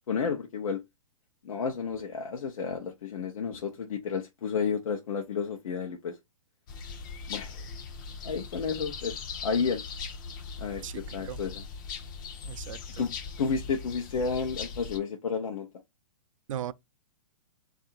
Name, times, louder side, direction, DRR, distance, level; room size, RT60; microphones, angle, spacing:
voice 1, 0.1-0.8 1.4-6.2 7.3-7.6 8.2-9.2 9.4-9.8 10.6-11.6 13.0-13.1 13.4-15.7, left 5 dB, 75° left, 0.8 m, -31 dB
sound 1, 6.7-15.0, left 5 dB, 35° left, 0.7 m, -40 dB
voice 2, 10.8-11.4 12.4-13.1 16.5-16.7, right 10 dB, 65° right, 0.4 m, -38 dB
3.7 x 2.6 x 4.2 m
hypercardioid pair, 160°, 18 cm